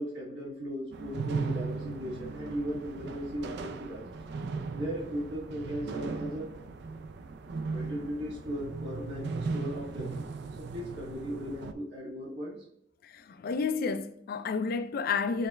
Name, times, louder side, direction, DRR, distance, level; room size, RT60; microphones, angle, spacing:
voice 1, 0.0-4.1 4.7-6.5 7.7-10.2 10.6-12.6, equal, 80° right, 1.7 m, -37 dB
sound 1, 0.9-11.7, right 4 dB, 65° right, 0.4 m, -37 dB
voice 2, 13.0-15.5, left 5 dB, 55° left, 0.3 m, -31 dB
6.3 x 2.4 x 3.2 m
head